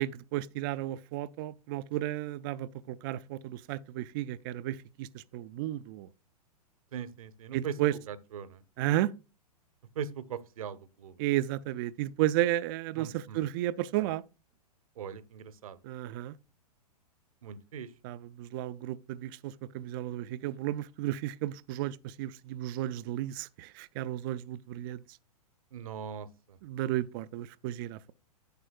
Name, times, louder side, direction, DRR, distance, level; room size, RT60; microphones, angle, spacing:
voice 1, 0.0-6.1 7.5-7.9 8.8-9.1 11.2-14.2 15.8-16.4 18.0-25.0 26.6-28.1, right 14 dB, 35° right, 0.4 m, -33 dB
voice 2, 6.9-7.8 8.1-8.6 9.9-11.2 13.0-13.4 15.0-15.8 17.4-17.9 25.7-26.6, right 7 dB, 60° right, 0.8 m, -40 dB
10.5 x 8.7 x 2.3 m
figure-of-eight pair, 110°, 20 cm